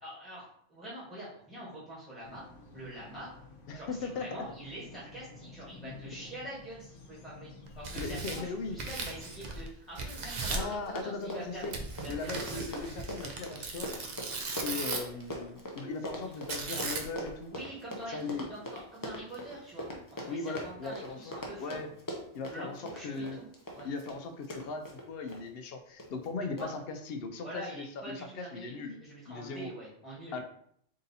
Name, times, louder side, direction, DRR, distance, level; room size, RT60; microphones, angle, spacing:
voice 1, 0.0-2.4 2.7-3.3 3.7-11.6 12.0-12.6 17.5-21.8 22.4-23.5 23.7-23.9 26.5-26.7 27.4-30.4, right 1 dB, 5° right, -8 dB, 1.2 m, -45 dB
sound 1, 2.2-9.7, left 3 dB, 80° left, 1.1 m, -52 dB
voice 2, 3.7-4.4 5.8-5.9 8.0-8.8 10.5-11.7 12.1-14.1 14.6-17.5 18.1-18.5 20.3-21.3 21.6-21.9 22.3-23.4 23.8-28.9 29.3-29.7 30.3-30.4, left 4 dB, 65° left, 6 dB, 0.7 m, -38 dB
Tearing, 7.7-9.7 10.0-10.7 11.7-15.2 16.5-17.3, right 3 dB, 50° right, 0.6 m, -37 dB
Run, 10.1-10.2 10.4-25.4 26.0-26.3 26.6-26.7, left 1 dB, 25° left, 0.4 m, -41 dB
3.7 x 2.7 x 4.0 m, 0.67 s
omnidirectional pair, 1.3 m